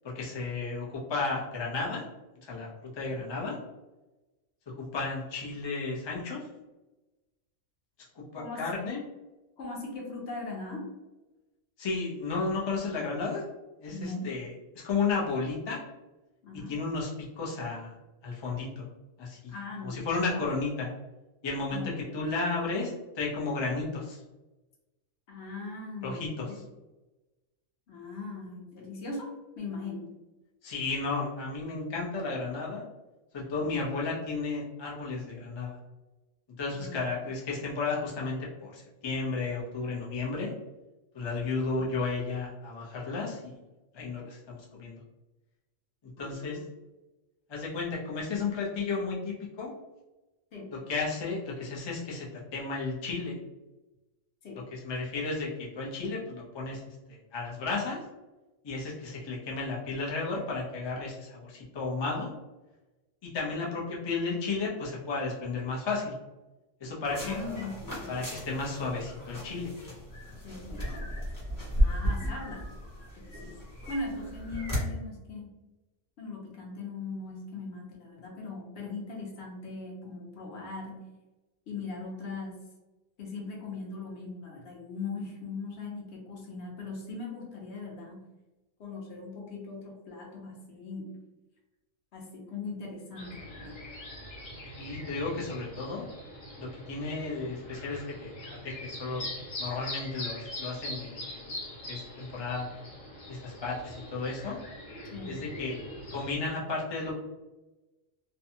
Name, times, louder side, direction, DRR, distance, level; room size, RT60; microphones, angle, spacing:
voice 1, 0.0-2.0 2.4-2.7 2.9-3.6 4.7-6.4 8.1-9.0 11.8-13.4 13.8-14.5 14.8-15.8 16.5-17.9 18.2-18.9 19.2-19.5 19.8-20.9 21.4-24.2 26.0-26.5 30.6-32.8 33.3-35.8 36.6-40.5 41.1-43.6 43.9-45.0 46.2-46.6 47.5-49.7 50.7-53.4 54.7-58.0 58.6-62.3 63.2-66.1 66.8-67.4 68.1-69.7 72.2-72.3 94.8-96.0 96.6-98.3 98.6-99.2 99.6-101.5 101.9-102.7 103.3-104.6 105.3-105.8 106.1-107.1, left 3 dB, 40° left, -4 dB, 0.4 m, -33 dB
voice 2, 8.4-8.7 9.6-10.9 13.9-14.3 16.4-16.8 19.5-20.0 20.3-20.5 21.7-21.9 25.3-26.6 27.9-30.1 36.7-37.0 46.2-46.7 50.5-50.8 54.4-54.6 67.1-68.1 70.3-71.1 71.8-72.6 73.2-73.5 73.9-75.5 76.2-81.0 81.7-82.6 83.2-88.2 88.8-91.1 92.1-93.8 105.1-105.3, left 3 dB, 65° left, -1 dB, 0.9 m, -40 dB
sound 1, 67.0-74.8, equal, 15° left, 0.9 m, -34 dB
sound 2, 93.2-106.3, left 1 dB, 90° left, 1.3 m, -42 dB
2.6 x 2.2 x 2.7 m, 1.1 s
omnidirectional pair, 1.3 m